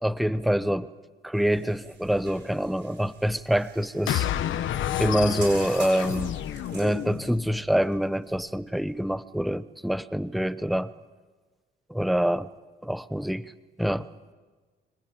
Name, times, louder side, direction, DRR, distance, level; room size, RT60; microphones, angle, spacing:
voice 1, 0.0-0.9 1.2-4.3 5.0-6.3 6.7-10.9 11.9-12.5 12.8-13.5 13.8-14.1, equal, ahead, 15 dB, 0.8 m, -26 dB
sound 1, 1.3-9.2, right 4 dB, 65° right, 7.7 m, -47 dB
sound 2, 4.1-7.4, left 11 dB, 75° left, 1.2 m, -30 dB
25.0 x 19.0 x 8.8 m, 1.4 s
cardioid pair, 90°, 20 cm